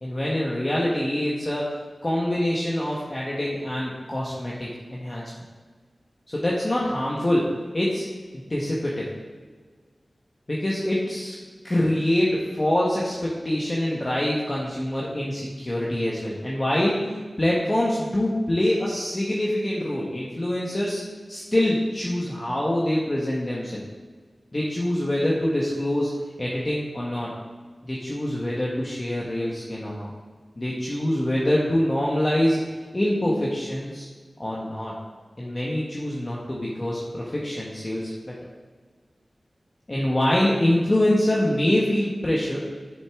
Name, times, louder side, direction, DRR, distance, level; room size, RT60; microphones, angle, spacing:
voice 1, 0.0-5.3 6.3-8.0 8.3-9.1 10.5-11.3 11.6-21.0 21.3-23.8 24.5-27.3 27.8-30.1 30.6-32.6 32.9-34.1 34.4-35.0 35.4-38.4 39.9-42.7, left 1 dB, 30° left, -5 dB, 1.1 m, -25 dB
7.5 x 6.7 x 3.6 m, 1.5 s
wide cardioid pair, 80°, 0 cm